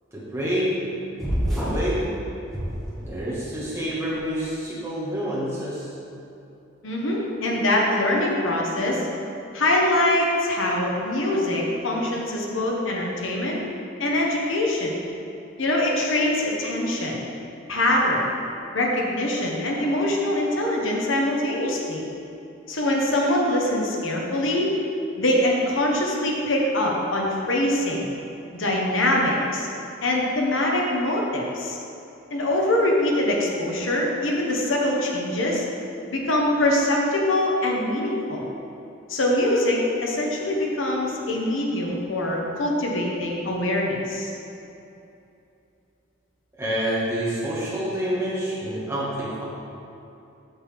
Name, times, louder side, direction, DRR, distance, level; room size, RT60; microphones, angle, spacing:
voice 1, 0.1-0.9 1.5-2.1 3.0-5.9 46.6-49.4, equal, 15° right, -8 dB, 1.8 m, -27 dB
sound 1, 1.2-1.9 2.5-3.4, equal, ahead, 1.5 m, -27 dB
voice 2, 6.8-9.1 9.5-13.6 14.0-14.9 15.6-17.2 17.7-18.3 18.7-22.0 22.7-24.7 25.2-28.1 28.5-29.7 30.0-31.8 32.3-35.6 36.1-38.5 39.1-44.3, left 1 dB, 85° left, -1 dB, 1.2 m, -23 dB
8.0 x 7.4 x 3.6 m, 2.8 s
head